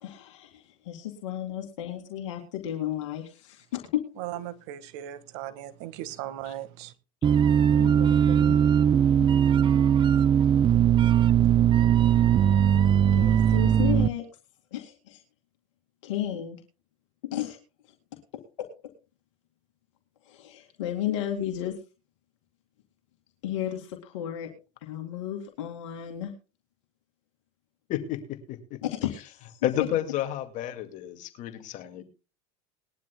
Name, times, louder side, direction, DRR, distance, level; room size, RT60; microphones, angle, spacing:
voice 1, 0.0-4.0 6.4-6.5 7.8-8.7 9.2-9.3 13.1-14.3 14.7-15.2 16.0-16.6 17.3-17.6 18.6-18.7 20.2-21.8 23.4-24.5 24.8-26.3 28.8-29.6, left 11 dB, 75° left, 2.3 m, -33 dB
voice 2, 4.2-6.9, right 13 dB, 70° right, 1.6 m, -37 dB
sound 1, 7.2-14.1, right 9 dB, 30° right, 0.6 m, -20 dB
voice 3, 27.9-28.8 29.6-32.0, left 12 dB, 55° left, 2.1 m, -31 dB
20.5 x 12.0 x 2.2 m
hypercardioid pair, 85°, 15 cm